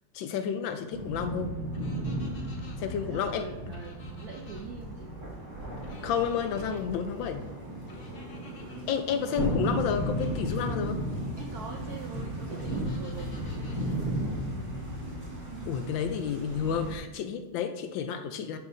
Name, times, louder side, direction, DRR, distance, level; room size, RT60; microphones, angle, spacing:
voice 1, 0.1-1.5 2.8-3.5 6.0-7.4 8.9-11.0 15.7-18.6, left 7 dB, 75° left, 8 dB, 1.2 m, -30 dB
sound 1, 0.9-17.0, right 1 dB, 40° right, 1.8 m, -35 dB
sound 2, 1.7-2.8 3.7-4.6 5.8-6.8 7.9-8.8 9.9-10.7 12.6-13.8, left 3 dB, 45° left, 0.7 m, -54 dB
voice 2, 2.9-5.1 8.4-8.9 9.2-9.6 11.4-15.1, right 5 dB, 75° right, 2 dB, 0.8 m, -45 dB
sound 3, 5.9-8.3 8.6-9.6 10.9-15.0, equal, 25° left, 2.6 m, -52 dB
9.9 x 6.2 x 2.6 m, 1.1 s
omnidirectional pair, 2.3 m